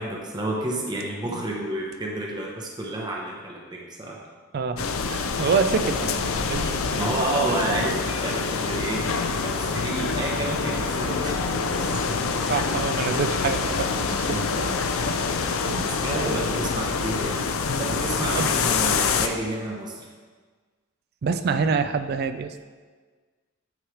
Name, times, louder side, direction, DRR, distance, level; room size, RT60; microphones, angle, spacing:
voice 1, 0.0-4.2 7.0-12.3 14.1-14.8 15.8-17.4 17.8-20.1, right 1 dB, 20° right, -1 dB, 0.8 m, -30 dB
voice 2, 4.5-7.2 7.7-8.0 9.6-9.9 12.5-14.3 15.5-16.4 18.3-18.5 21.2-22.6, right 5 dB, 50° right, 10 dB, 0.3 m, -27 dB
sound 1, 4.8-19.3, left 5 dB, 85° left, 0.5 m, -26 dB
9.1 x 3.1 x 4.9 m, 1.4 s
head